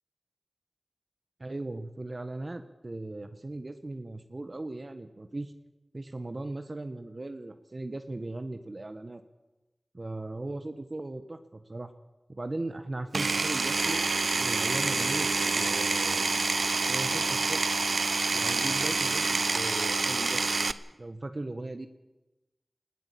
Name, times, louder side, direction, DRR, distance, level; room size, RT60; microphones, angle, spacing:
voice 1, 1.4-5.5 5.9-9.2 9.9-11.9 12.3-14.0 14.4-15.3 15.5-16.3 16.9-17.8 18.3-20.5 21.0-21.9, right 2 dB, 45° right, 8 dB, 1.3 m, -38 dB
Power tool, 13.1-20.7, right 3 dB, 80° right, 0.8 m, -27 dB
20.0 x 16.5 x 8.6 m, 1.0 s
wide cardioid pair, 70°, 0 cm